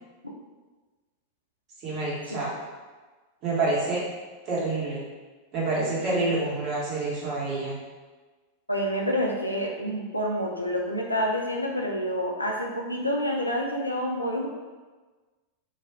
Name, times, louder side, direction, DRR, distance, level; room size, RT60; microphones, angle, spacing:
voice 1, 1.8-2.5 3.4-4.0 4.4-5.0 5.5-7.7, right 2 dB, 35° right, -6 dB, 0.9 m, -27 dB
voice 2, 8.7-14.5, equal, 85° left, -1 dB, 0.4 m, -28 dB
2.2 x 2.2 x 3.4 m, 1.3 s
figure-of-eight pair, 90°, 0 cm